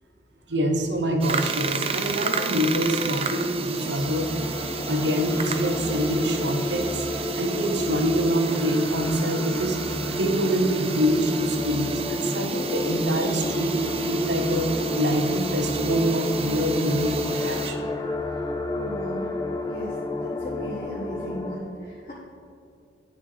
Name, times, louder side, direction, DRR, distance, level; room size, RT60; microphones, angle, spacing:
voice 1, 0.5-4.3 4.9-7.0 7.4-9.8 10.1-14.7 14.9-17.9, equal, 90° right, 3 dB, 1.0 m, -25 dB
sound 1, 1.2-17.7, right 5 dB, 35° right, 0.4 m, -32 dB
sound 2, 3.8-21.5, left 2 dB, 20° left, 0.5 m, -31 dB
voice 2, 18.7-19.3 19.6-19.9 20.2-22.1, left 1 dB, 45° left, -7 dB, 1.3 m, -36 dB
11.0 x 6.6 x 3.3 m, 2.5 s
head